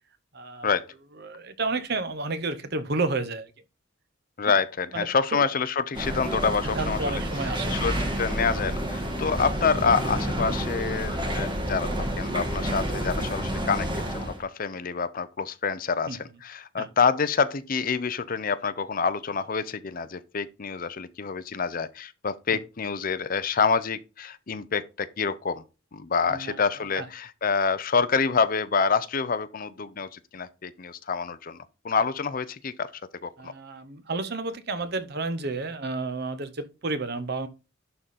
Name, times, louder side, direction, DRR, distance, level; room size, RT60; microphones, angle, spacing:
voice 1, 0.3-0.7 1.2-3.5 4.4-4.5 4.9-5.4 6.6-7.8 16.1-16.2 16.8-16.9 22.5-22.6 26.3-26.6 26.9-27.1 33.4-37.5, right 3 dB, 50° right, 0.9 m, -31 dB
voice 2, 4.4-7.2 7.7-25.6 25.9-31.6 31.8-32.9 33.2-33.5, left 5 dB, 45° left, 0.5 m, -27 dB
sound 1, 5.9-14.4, equal, 25° right, 1.5 m, -29 dB
11.0 x 3.8 x 4.1 m
head